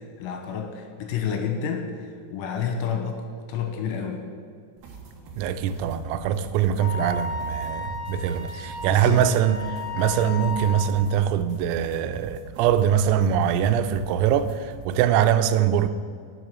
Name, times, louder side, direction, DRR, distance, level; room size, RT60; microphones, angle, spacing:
voice 1, 0.2-1.9 2.3-4.2 8.2-9.3, left 7 dB, 75° left, 3.2 m, -30 dB
sound 1, 4.8-15.1, right 4 dB, 70° right, 2.5 m, -44 dB
voice 2, 5.4-15.9, right 9 dB, 90° right, 3.3 m, -23 dB
Wind instrument woodwind instrument, 6.8-11.0, left 2 dB, 55° left, 3.3 m, -34 dB
10.0 x 7.2 x 6.1 m
omnidirectional pair, 5.9 m